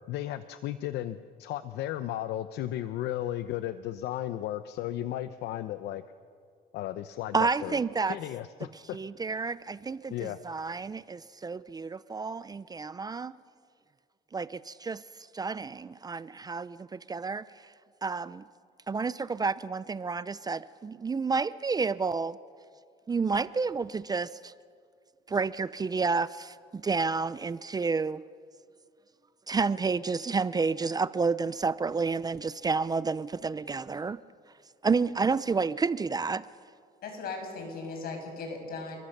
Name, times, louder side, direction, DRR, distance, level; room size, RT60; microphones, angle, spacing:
voice 1, 0.1-6.0 6.7-7.8 8.1-9.0 10.1-10.4, left 13 dB, 80° left, 12 dB, 0.8 m, -34 dB
voice 2, 7.3-8.2 8.9-13.3 14.3-15.0 15.3-17.4 18.0-18.4 18.9-22.4 23.1-24.5 25.3-28.2 29.5-34.2 34.8-36.5, right 4 dB, 25° right, 16 dB, 0.5 m, -30 dB
voice 3, 37.0-39.0, left 3 dB, 65° left, 4 dB, 6.5 m, -37 dB
29.0 x 22.0 x 6.7 m, 2.1 s
cardioid pair, 110°, 17 cm